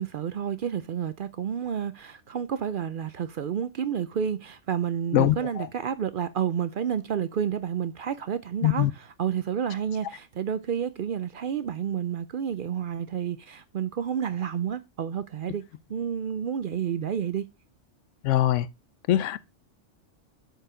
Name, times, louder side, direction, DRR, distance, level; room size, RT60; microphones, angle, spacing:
voice 1, 0.0-15.6 15.9-17.5, right 8 dB, 60° right, 0.6 m, -30 dB
voice 2, 5.1-5.7 8.6-8.9 18.2-18.7 19.1-19.4, left 13 dB, 85° left, 0.9 m, -22 dB
7.8 x 4.7 x 4.9 m
omnidirectional pair, 1.2 m